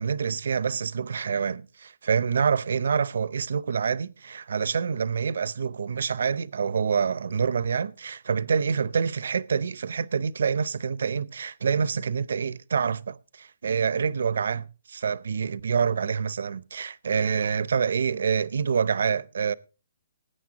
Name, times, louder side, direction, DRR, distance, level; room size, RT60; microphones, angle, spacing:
voice 1, 0.0-19.5, right 6 dB, 70° right, 0.7 m, -27 dB
20.5 x 9.1 x 2.9 m
hypercardioid pair, 155°, 0 cm